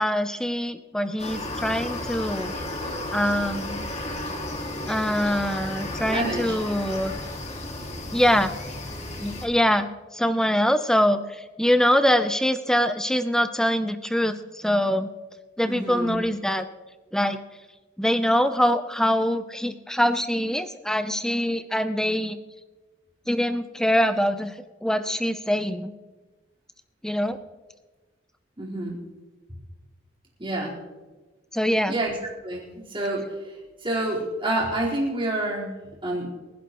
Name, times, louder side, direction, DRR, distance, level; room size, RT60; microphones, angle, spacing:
voice 1, 0.0-2.5 3.1-3.9 4.9-7.1 8.1-8.5 9.2-15.1 15.6-16.7 17.1-17.4 18.0-22.4 23.3-24.5 24.8-25.9 27.0-27.4 31.5-32.0, equal, 5° left, 10 dB, 0.6 m, -24 dB
sound 1, 1.2-9.5, left 1 dB, 35° left, 1.9 m, -33 dB
voice 2, 6.1-6.6 15.7-16.2 28.6-29.0 30.4-30.8 31.9-32.2 32.4-35.7 36.0-36.3, right 1 dB, 25° right, -5 dB, 4.3 m, -28 dB
30.0 x 11.0 x 3.1 m, 1.3 s
head